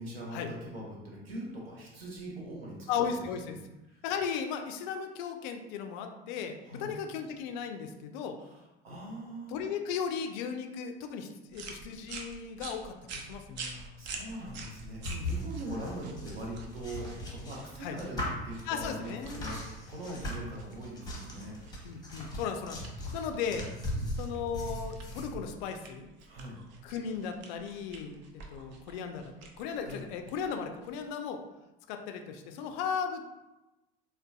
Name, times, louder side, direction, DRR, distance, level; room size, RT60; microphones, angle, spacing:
voice 1, 0.0-3.6 3.9-4.0 6.6-6.9 8.4-9.6 13.6-21.6 23.8-24.1 26.2-26.6 29.8-30.0, right 1 dB, 75° right, -3 dB, 0.8 m, -42 dB
voice 2, 2.9-3.6 4.0-8.4 9.5-13.9 15.1-15.4 17.8-18.0 18.7-19.4 20.1-20.2 21.8-22.8 23.1-23.7 24.2-26.1 26.8-28.2 28.5-31.4 31.9-33.3, left 7 dB, 50° left, 6 dB, 0.4 m, -36 dB
sound 1, 11.5-31.1, right 4 dB, 40° right, 0.5 m, -48 dB
sound 2, 14.5-25.3, left 1 dB, 15° left, 0.9 m, -39 dB
3.8 x 2.2 x 2.2 m, 1.0 s
figure-of-eight pair, 65°, 30 cm